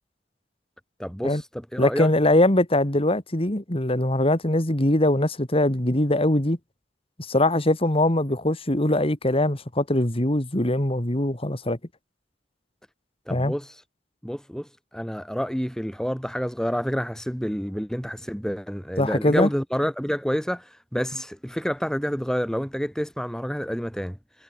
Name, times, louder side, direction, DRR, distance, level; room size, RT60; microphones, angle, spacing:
voice 1, 1.0-1.5 1.7-2.1 13.3-13.8 14.2-24.4, equal, 5° left, 5.4 m, -28 dB
voice 2, 1.8-6.6 7.2-11.8 13.3-13.5 19.0-19.5, left 1 dB, 30° left, 2.4 m, -22 dB
head